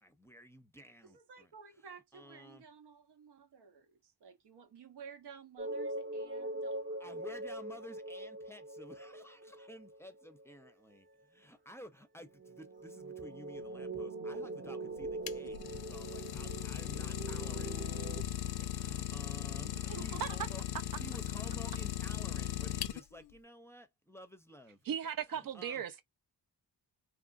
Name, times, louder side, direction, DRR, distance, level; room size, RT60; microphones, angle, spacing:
voice 1, 0.0-1.5 2.1-2.6 7.0-17.8 18.4-20.6 21.0-24.8 25.3-25.8, equal, 5° left, 0.6 m, -53 dB
voice 2, 1.0-7.0 19.7-20.4, right 6 dB, 90° right, 0.9 m, -53 dB
sound 1, 5.6-10.7 12.4-18.2, right 2 dB, 30° right, 0.8 m, -42 dB
Idling, 15.0-23.3, left 11 dB, 70° left, 0.5 m, -38 dB
voice 3, 19.9-20.3 24.9-26.0, right 8 dB, 60° right, 0.5 m, -37 dB
2.9 x 2.4 x 2.4 m
cardioid pair, 80°, 39 cm